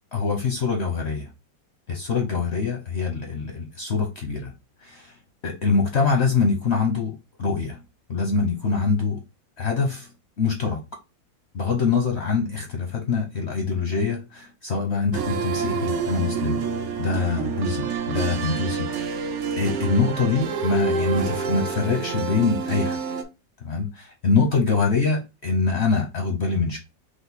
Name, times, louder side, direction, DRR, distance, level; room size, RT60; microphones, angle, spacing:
voice 1, 0.1-1.3 1.9-4.5 4.8-5.1 5.4-7.8 8.1-9.2 9.6-10.1 10.4-10.8 11.5-16.6 17.0-18.9 19.6-23.0 23.6-26.8, left 4 dB, 60° left, 0.7 m, -24 dB
sound 1, 15.1-23.2, right 6 dB, 70° right, 0.7 m, -28 dB
5.0 x 2.0 x 4.0 m
omnidirectional pair, 2.0 m